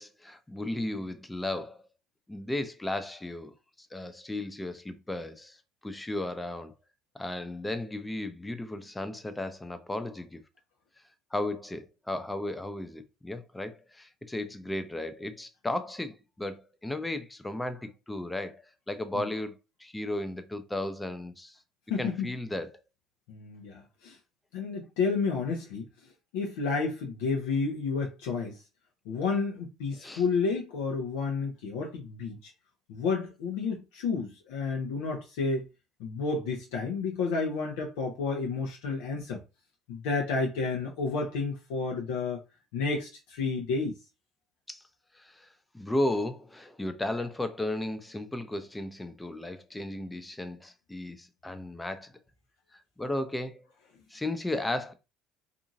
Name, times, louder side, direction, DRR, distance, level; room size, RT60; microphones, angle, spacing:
voice 1, 0.0-1.8 2.3-5.6 5.8-6.7 7.1-10.4 11.3-21.6 22.0-22.8 30.0-30.2 44.7-44.8 45.1-52.1 52.7-53.6 54.1-54.9, left 1 dB, 10° left, 0.5 m, -35 dB
voice 2, 21.9-22.3 23.3-24.2 24.5-25.9 26.3-28.6 29.1-32.5 32.9-35.7 36.0-39.4 39.9-42.4 42.7-44.0, left 4 dB, 70° left, 0.5 m, -31 dB
2.7 x 2.5 x 2.5 m
hypercardioid pair, 60°, 0 cm